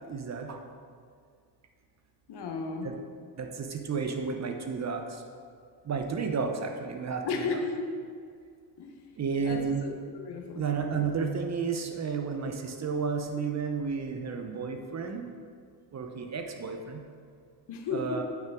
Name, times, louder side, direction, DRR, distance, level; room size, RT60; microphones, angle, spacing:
voice 1, 0.1-0.6 2.8-2.9 3.4-5.2 5.8-7.6 9.2-9.8 10.5-15.2 15.9-17.0 17.9-18.2, right 5 dB, 40° right, 4 dB, 0.8 m, -32 dB
voice 2, 2.3-2.9 7.2-7.9 8.8-8.9 9.4-10.6 17.7-18.2, left 4 dB, 65° left, 3 dB, 1.1 m, -34 dB
8.9 x 5.8 x 3.6 m, 2.1 s
cardioid pair, 105°, 43 cm